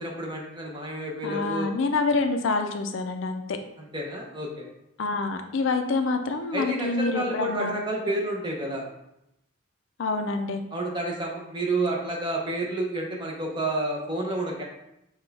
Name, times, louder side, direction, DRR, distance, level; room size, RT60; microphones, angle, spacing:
voice 1, 0.0-1.7 3.8-4.7 6.5-8.8 10.7-14.6, right 1 dB, 20° right, -1 dB, 0.7 m, -30 dB
voice 2, 1.2-3.6 5.0-7.8 10.0-10.6, left 3 dB, 65° left, 6 dB, 0.4 m, -27 dB
5.9 x 2.3 x 3.3 m, 0.84 s
head